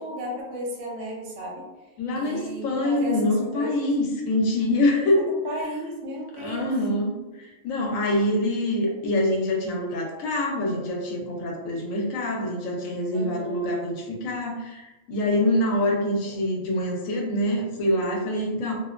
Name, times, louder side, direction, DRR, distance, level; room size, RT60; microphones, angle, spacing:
voice 1, 0.0-1.7 2.1-3.7 5.2-6.7 13.1-13.7, right 1 dB, 70° right, -2 dB, 0.9 m, -34 dB
voice 2, 2.0-5.3 6.4-18.7, left 1 dB, 80° left, -1 dB, 1.0 m, -25 dB
2.5 x 2.1 x 2.3 m, 1.1 s
omnidirectional pair, 1.4 m